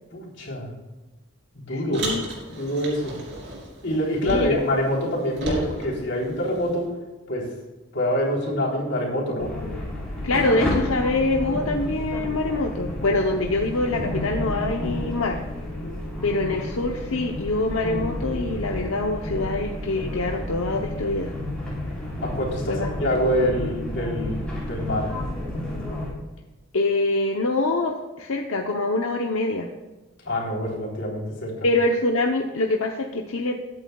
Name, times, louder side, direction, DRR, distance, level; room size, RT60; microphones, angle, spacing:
voice 1, 0.1-0.7 1.5-2.0 2.5-3.2 3.8-6.9 7.3-7.5 7.9-9.5 22.2-25.1 30.3-31.7, equal, 60° left, -2 dB, 3.5 m, -26 dB
voice 2, 1.7-2.2 4.2-4.7 10.2-15.4 16.2-21.3 22.7-23.5 26.7-29.7 31.6-33.6, left 2 dB, 90° left, 2 dB, 0.8 m, -25 dB
Car, 1.9-4.7 5.0-6.8, right 1 dB, 55° right, 3.3 m, -34 dB
sound 1, 9.4-26.1, left 1 dB, 5° left, 3.7 m, -31 dB
20.5 x 8.9 x 2.3 m, 1.2 s
head